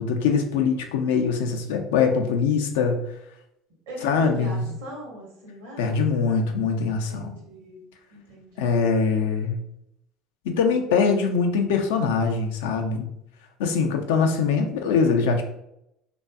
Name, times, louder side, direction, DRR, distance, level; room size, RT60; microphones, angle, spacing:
voice 1, 0.0-3.0 4.0-4.6 5.8-7.3 8.6-9.6 10.5-13.1 13.6-15.4, left 5 dB, 80° left, 4 dB, 0.3 m, -23 dB
voice 2, 3.9-6.5 7.1-8.8, right 1 dB, 85° right, -2 dB, 0.9 m, -41 dB
2.6 x 2.3 x 2.3 m, 0.80 s
hypercardioid pair, 70°, 0 cm